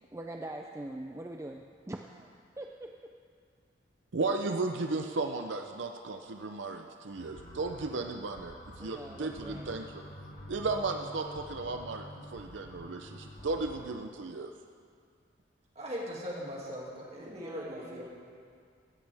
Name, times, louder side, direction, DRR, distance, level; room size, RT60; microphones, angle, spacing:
voice 1, 0.1-3.1 8.8-9.7 17.2-18.1, right 1 dB, 15° right, 2 dB, 0.4 m, -44 dB
voice 2, 4.1-10.0 10.5-14.5, right 3 dB, 75° right, 5 dB, 0.6 m, -35 dB
sound 1, 7.1-13.9, equal, 70° left, 4.2 m, -48 dB
voice 3, 15.8-18.1, equal, 35° right, -4 dB, 2.4 m, -39 dB
17.0 x 13.5 x 3.5 m, 2.2 s
head